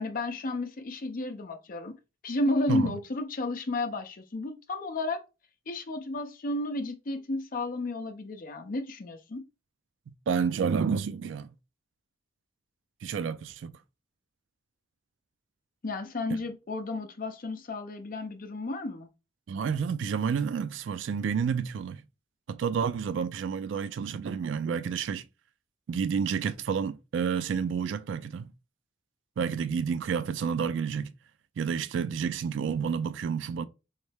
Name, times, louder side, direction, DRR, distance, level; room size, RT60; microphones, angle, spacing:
voice 1, 0.0-2.0 2.2-5.2 5.7-9.4 15.8-19.1, left 2 dB, 45° left, 0.6 m, -32 dB
voice 2, 10.3-11.5 13.0-13.7 19.5-22.0 22.5-25.2 25.9-28.5 29.4-31.1 31.6-33.7, right 6 dB, 70° right, 0.3 m, -30 dB
3.2 x 3.1 x 3.3 m
head